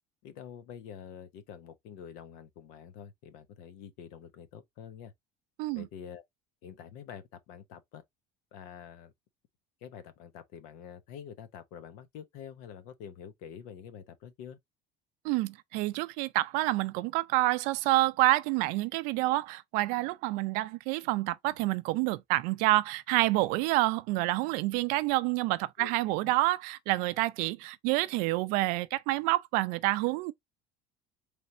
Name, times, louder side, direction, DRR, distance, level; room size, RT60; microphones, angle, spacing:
voice 1, 0.2-5.1 5.7-6.2 6.6-8.0 8.5-9.1 9.8-14.6 25.8-25.9 26.2-26.3, left 8 dB, 65° left, 0.8 m, -47 dB
voice 2, 15.2-30.3, right 18 dB, 60° right, 0.4 m, -28 dB
4.3 x 3.4 x 2.6 m
cardioid pair, 160°, 15 cm